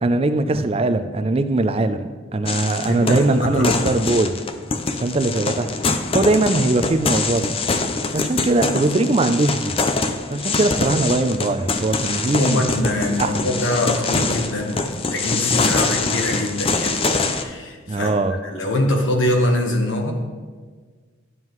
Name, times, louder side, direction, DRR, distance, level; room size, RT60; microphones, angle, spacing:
voice 1, 0.0-4.3 5.0-5.7 6.1-7.6 8.1-9.7 10.3-12.7 13.1-13.3 17.9-18.4, right 2 dB, 30° right, 9 dB, 0.4 m, -20 dB
sound 1, 2.5-17.4, left 3 dB, 30° left, 0.4 m, -24 dB
voice 2, 2.9-4.1 12.3-18.1 18.4-20.1, left 1 dB, 85° left, 2 dB, 1.2 m, -23 dB
11.0 x 7.4 x 3.1 m, 1.5 s
head